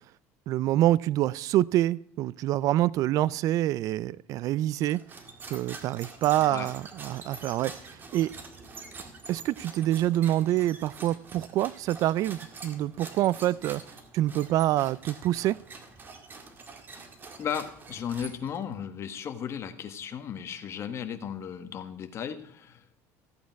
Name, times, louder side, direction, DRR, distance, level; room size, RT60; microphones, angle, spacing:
voice 1, 0.5-5.0 5.5-7.7 8.1-8.3 9.3-13.8 14.1-15.6, right 14 dB, 55° right, 21 dB, 0.3 m, -26 dB
sound 1, 4.8-18.7, right 4 dB, 30° right, 1.8 m, -46 dB
voice 2, 6.4-6.7 17.4-23.0, left 8 dB, 40° left, 8 dB, 1.4 m, -35 dB
14.5 x 8.5 x 4.6 m, 0.65 s
cardioid pair, 125°, 7 cm